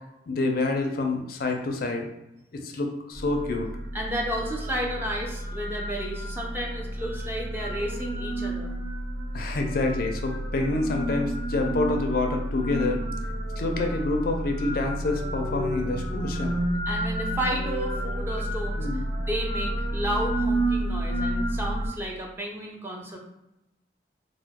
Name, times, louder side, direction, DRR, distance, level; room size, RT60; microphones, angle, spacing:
voice 1, 0.3-2.1 2.5-3.7 9.3-13.0 13.6-16.5 18.8-19.0, left 2 dB, 50° left, 3 dB, 0.4 m, -27 dB
sound 1, 3.1-21.9, right 1 dB, 40° right, 0.8 m, -30 dB
voice 2, 3.9-8.7 16.9-23.2, equal, 10° right, -1 dB, 0.4 m, -32 dB
2.9 x 2.1 x 3.4 m, 0.90 s
head